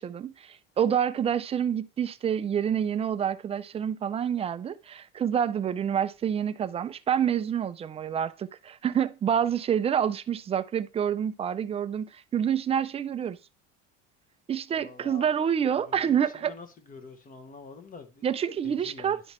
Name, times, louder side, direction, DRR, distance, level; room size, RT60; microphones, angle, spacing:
voice 1, 0.0-13.4 14.5-16.5 18.2-19.2, right 8 dB, 20° right, 0.4 m, -27 dB
voice 2, 14.7-15.3 15.6-18.3 18.6-19.2, left 4 dB, 30° left, 1.1 m, -47 dB
11.0 x 3.9 x 3.0 m
cardioid pair, 120°, 30 cm